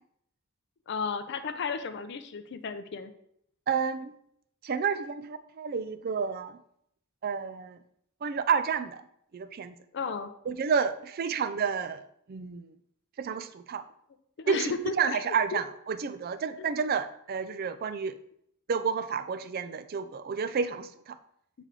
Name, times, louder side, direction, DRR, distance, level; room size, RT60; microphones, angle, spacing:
voice 1, 0.9-3.1 9.9-10.3 14.4-15.6 16.6-16.7, left 5 dB, 55° left, 10 dB, 0.5 m, -34 dB
voice 2, 3.7-4.1 4.6-6.6 7.2-7.8 8.2-9.0 9.3-9.8 10.4-12.0 12.3-12.7 13.2-13.8 14.5-18.2 18.7-21.2, right 6 dB, 45° right, 12 dB, 0.3 m, -30 dB
8.0 x 3.3 x 3.7 m, 0.71 s
head